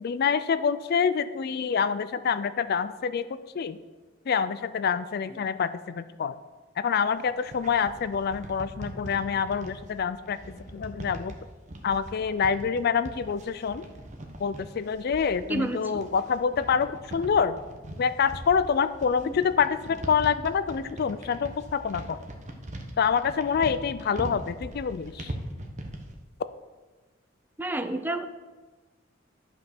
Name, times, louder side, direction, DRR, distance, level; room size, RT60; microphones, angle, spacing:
voice 1, 0.0-3.3 3.5-3.8 4.3-6.3 6.8-11.3 11.8-13.8 14.4-17.6 18.0-22.2 23.0-25.3, left 6 dB, 50° left, 13 dB, 0.4 m, -26 dB
sound 1, 7.1-26.2, right 1 dB, 40° right, 1.1 m, -41 dB
voice 2, 15.5-16.0 19.2-19.4 27.6-28.3, right 1 dB, 10° right, 9 dB, 0.5 m, -30 dB
11.5 x 5.4 x 5.9 m, 1.3 s
head